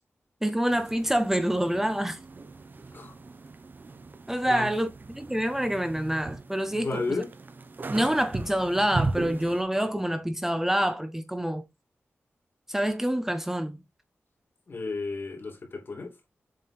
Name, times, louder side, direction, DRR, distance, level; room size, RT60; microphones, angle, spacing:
voice 1, 0.4-2.2 4.3-7.2 7.9-11.7 12.7-13.8, right 1 dB, 10° right, 0.7 m, -27 dB
sound 1, 0.7-9.6, right 3 dB, 45° right, 0.8 m, -38 dB
voice 2, 6.7-7.3 14.7-16.1, left 3 dB, 55° left, 2.5 m, -33 dB
7.6 x 3.4 x 4.3 m
wide cardioid pair, 100°, 5 cm